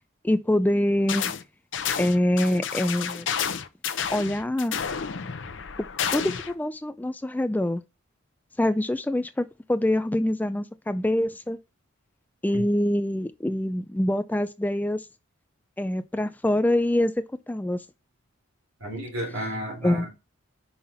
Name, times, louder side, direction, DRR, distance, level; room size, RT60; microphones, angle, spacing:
voice 1, 0.2-1.3 2.0-3.3 4.1-4.7 6.1-7.8 8.6-11.6 12.4-15.1 15.8-17.1 17.5-17.8 19.8-20.1, left 1 dB, 10° left, 0.3 m, -25 dB
sound 1, 1.1-1.4 1.7-6.5, left 7 dB, 60° left, 0.6 m, -30 dB
voice 2, 18.8-20.1, right 1 dB, 90° right, 3.5 m, -32 dB
5.6 x 5.6 x 4.3 m
head